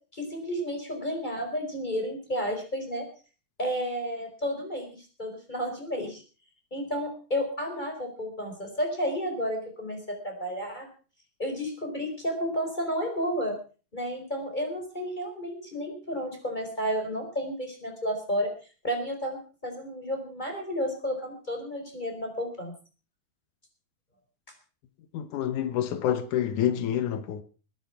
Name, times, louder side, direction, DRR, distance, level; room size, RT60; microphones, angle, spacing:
voice 1, 0.1-3.1 3.6-6.2 6.7-10.9 11.4-13.6 13.9-18.5 18.8-22.7, equal, 15° left, 4.8 m, -32 dB
voice 2, 25.1-27.4, left 10 dB, 85° left, 2.6 m, -28 dB
21.0 x 10.0 x 5.8 m
omnidirectional pair, 3.4 m